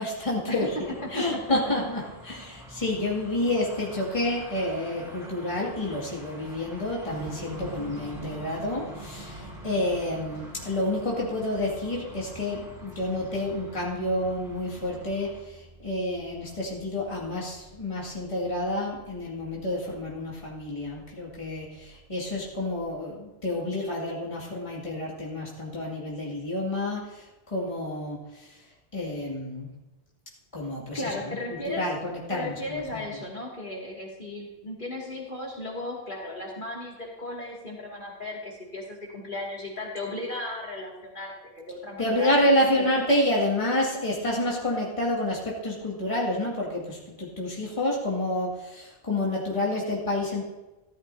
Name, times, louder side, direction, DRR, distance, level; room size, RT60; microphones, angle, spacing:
voice 1, 0.0-28.6 28.9-29.7 30.5-33.2 42.0-50.4, left 1 dB, 30° left, -4 dB, 2.3 m, -29 dB
sound 1, 0.6-15.4, equal, 5° right, 2.5 m, -47 dB
voice 2, 1.0-1.4 30.9-31.8 32.3-42.3, left 2 dB, 50° left, -3 dB, 2.6 m, -35 dB
sound 2, 7.1-23.0, right 2 dB, 70° right, 1.3 m, -46 dB
15.0 x 12.5 x 2.7 m, 1.1 s
omnidirectional pair, 1.1 m